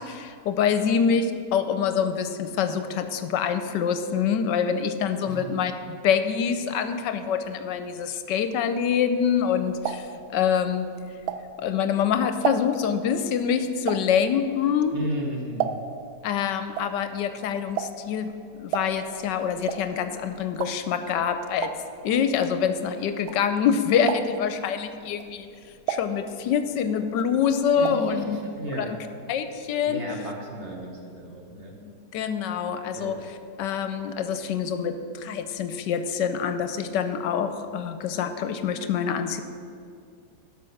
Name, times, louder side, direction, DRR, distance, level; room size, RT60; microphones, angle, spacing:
voice 1, 0.0-10.9 11.6-15.0 16.2-18.3 18.6-21.7 22.0-25.5 25.9-28.4 28.8-29.0 29.3-30.3 31.9-39.4, left 7 dB, 75° left, 9 dB, 1.2 m, -26 dB
sound 1, 9.3-11.8 12.2-16.1 16.4-23.7 24.0-24.6 25.1-26.8 27.1-28.2 28.4-28.5 28.8-28.9, right 8 dB, 70° right, 1.0 m, -33 dB
voice 2, 14.9-15.7 27.8-29.0 29.8-31.7 32.9-33.2, right 1 dB, 45° right, 1 dB, 1.2 m, -34 dB
12.0 x 5.5 x 6.4 m, 2.4 s
omnidirectional pair, 2.0 m